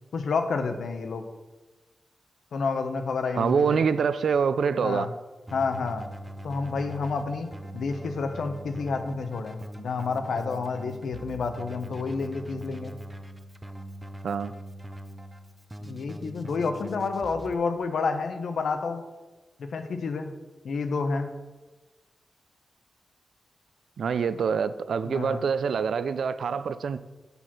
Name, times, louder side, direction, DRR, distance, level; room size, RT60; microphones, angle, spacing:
voice 1, 0.1-1.2 2.5-3.8 4.8-5.1 5.5-6.1 6.4-12.9 15.8-19.0 19.6-20.3 20.6-21.3 25.0-25.4, left 4 dB, 90° left, 7 dB, 0.7 m, -29 dB
voice 2, 3.3-5.1 14.2-14.5 24.0-27.0, right 6 dB, 85° right, 14 dB, 0.3 m, -25 dB
Keyboard (musical), 5.5-17.5, right 1 dB, 15° right, 0.4 m, -42 dB
6.8 x 4.3 x 6.0 m, 1.2 s
wide cardioid pair, 135°, 0 cm